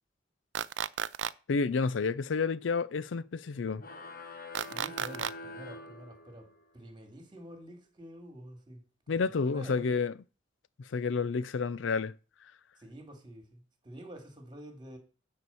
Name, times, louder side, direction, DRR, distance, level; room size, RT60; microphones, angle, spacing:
sound 1, 0.5-1.3 4.5-5.3, right 9 dB, 80° right, 0.4 m, -33 dB
voice 1, 1.5-3.8 9.1-10.1 10.8-12.1, left 4 dB, 80° left, 0.5 m, -30 dB
sound 2, 3.8-6.7, left 2 dB, 50° left, 1.3 m, -45 dB
voice 2, 4.6-6.5 6.7-8.8 9.1-9.9 12.8-15.0, right 1 dB, 25° right, 2.4 m, -48 dB
9.4 x 4.7 x 7.0 m
head